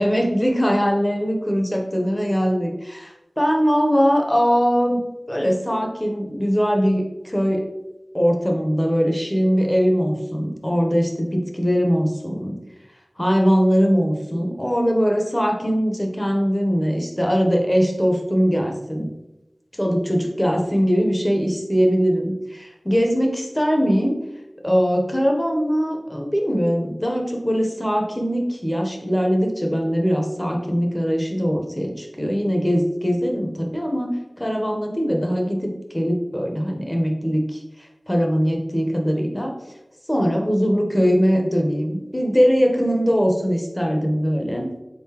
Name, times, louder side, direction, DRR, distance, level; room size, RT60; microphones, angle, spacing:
voice 1, 0.0-5.0 5.3-7.6 8.1-12.6 13.2-19.1 19.7-24.2 24.6-34.1 34.4-39.5 40.1-44.7, equal, 15° left, 1 dB, 0.8 m, -21 dB
4.1 x 3.8 x 2.9 m, 0.97 s
wide cardioid pair, 55°, 0 cm